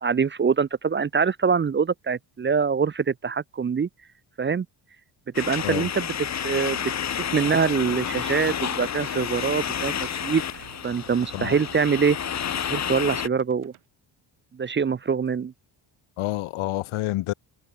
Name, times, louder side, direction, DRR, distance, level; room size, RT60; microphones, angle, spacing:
voice 1, 0.0-3.9 4.4-4.7 5.3-6.1 6.4-9.9 10.2-10.4 10.8-12.2 12.6-13.7 14.5-15.5, right 6 dB, 25° right, 0.5 m, -24 dB
sound 1, 5.3-13.3, left 8 dB, 35° left, 1.0 m, -30 dB
sound 2, 8.7-13.8, right 13 dB, 85° right, 3.2 m, -50 dB
voice 2, 16.2-17.3, left 16 dB, 85° left, 0.9 m, -28 dB
wide cardioid pair, 170°, 48 cm